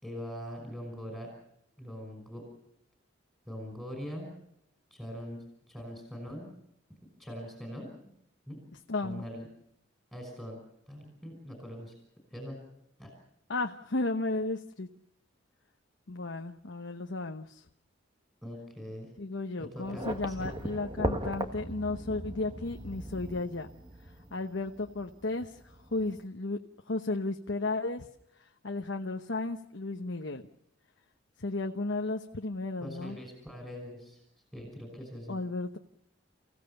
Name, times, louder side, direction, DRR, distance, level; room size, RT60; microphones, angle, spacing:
voice 1, 0.0-1.3 1.8-2.4 3.5-4.3 4.9-6.5 7.2-7.9 8.5-8.6 9.0-9.5 10.1-10.6 10.9-11.9 12.3-12.6 13.0-13.1 18.4-19.1 19.6-20.5 32.8-34.2 34.5-35.4, equal, 5° right, 1 dB, 5.5 m, -42 dB
voice 2, 8.9-9.3 13.5-14.9 16.1-17.6 19.2-23.7 24.3-26.6 26.9-28.0 28.4-30.5 31.4-33.2 35.3-35.8, left 2 dB, 65° left, 4 dB, 1.1 m, -34 dB
sound 1, 19.8-26.2, right 1 dB, 25° right, 1.5 m, -38 dB
30.0 x 16.5 x 6.9 m, 0.76 s
head